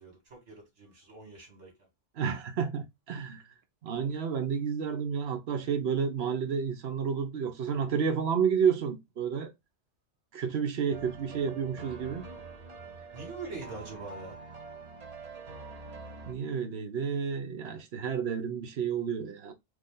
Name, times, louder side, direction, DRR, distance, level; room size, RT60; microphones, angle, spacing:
voice 1, 0.0-1.7 13.1-14.4, right 3 dB, 85° right, 2.3 m, -43 dB
voice 2, 2.2-3.4 3.8-9.5 10.3-12.3 16.3-19.5, right 7 dB, 65° right, 1.0 m, -30 dB
sound 1, 10.9-16.3, right 4 dB, 35° right, 0.9 m, -45 dB
4.7 x 2.6 x 3.7 m
omnidirectional pair, 1.2 m